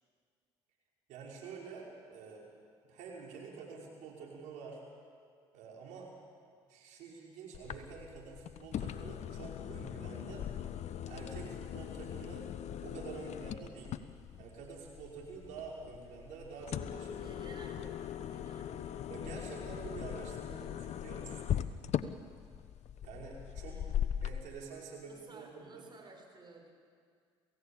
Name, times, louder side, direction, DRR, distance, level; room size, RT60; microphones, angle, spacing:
voice 1, 1.1-2.5 2.8-4.8 5.5-6.1 6.7-10.5 11.1-12.5 12.8-14.0 14.4-17.4 19.1-21.4 23.0-23.8 24.2-25.8, right 5 dB, 75° right, -2 dB, 5.7 m, -48 dB
sound 1, 7.5-24.4, left 10 dB, 60° left, 1.0 m, -40 dB
voice 2, 17.2-19.0 23.6-24.1 25.1-26.7, right 3 dB, 35° right, 2 dB, 6.6 m, -55 dB
27.5 x 16.5 x 8.9 m, 2.1 s
hypercardioid pair, 60°, 13 cm